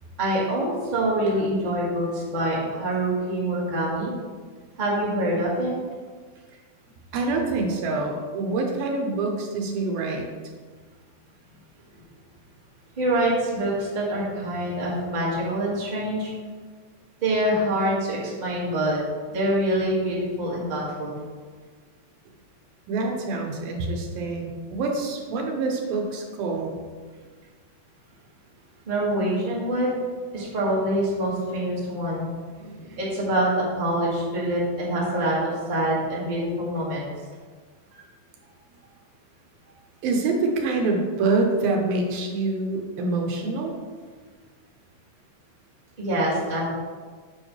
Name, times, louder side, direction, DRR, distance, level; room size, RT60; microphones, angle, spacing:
voice 1, 0.2-4.1 4.8-5.8 11.9-12.0 13.0-16.3 17.2-19.0 19.2-21.2 28.8-29.9 30.3-32.3 33.0-37.0 37.9-38.0 46.0-46.7, right 1 dB, 20° right, -6 dB, 1.3 m, -25 dB
voice 2, 7.1-10.3 22.9-26.8 32.5-33.0 40.0-43.7, right 3 dB, 80° right, 1 dB, 2.9 m, -26 dB
9.0 x 7.0 x 3.3 m, 1.5 s
omnidirectional pair, 4.1 m